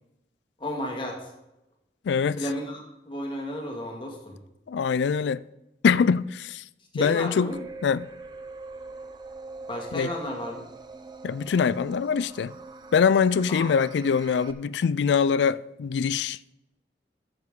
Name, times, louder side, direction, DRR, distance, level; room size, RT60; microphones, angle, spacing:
voice 1, 0.6-1.3 2.4-4.4 6.9-7.6 9.7-10.6 13.5-13.8, left 1 dB, 30° left, 2.0 m, -33 dB
voice 2, 2.0-2.4 4.7-5.4 5.8-6.6 6.9-7.6 7.8-8.1 9.9-10.1 11.2-12.5 12.9-16.4, left 6 dB, 85° left, 0.3 m, -23 dB
sound 1, 7.5-14.5, right 3 dB, 25° right, 0.6 m, -42 dB
14.0 x 7.1 x 3.7 m
head